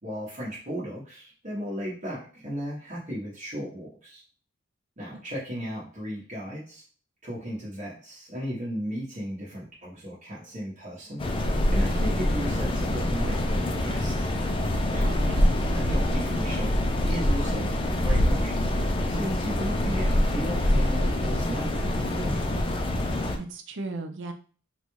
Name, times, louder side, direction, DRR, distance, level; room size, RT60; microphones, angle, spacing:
voice 1, 0.0-4.2 5.0-6.8 7.2-11.2 11.7-14.3 14.9-15.1 15.4-18.7 19.1-22.5, equal, 40° right, -6 dB, 1.0 m, -35 dB
sound 1, 11.2-23.4, left 1 dB, 25° left, 0.4 m, -25 dB
voice 2, 15.0-15.5 23.4-24.3, right 3 dB, 60° right, 7 dB, 0.5 m, -36 dB
4.0 x 2.3 x 3.0 m, 0.41 s
head